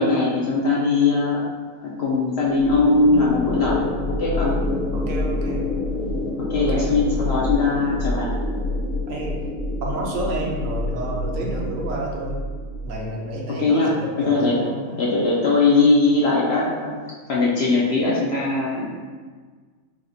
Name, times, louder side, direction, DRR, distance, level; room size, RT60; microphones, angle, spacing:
voice 1, 0.0-1.4 2.0-4.5 6.5-8.3 13.5-13.9 14.2-14.7 15.0-17.0 17.3-18.9, left 3 dB, 60° left, -5 dB, 0.7 m, -20 dB
sound 1, 2.6-13.0, left 2 dB, 90° left, 1.2 m, -27 dB
voice 2, 4.9-5.6 6.6-6.9 9.1-9.3 9.8-12.4 12.8-13.9 14.2-15.0, right 2 dB, 70° right, -2 dB, 1.1 m, -30 dB
4.8 x 2.5 x 2.7 m, 1.5 s
omnidirectional pair, 1.5 m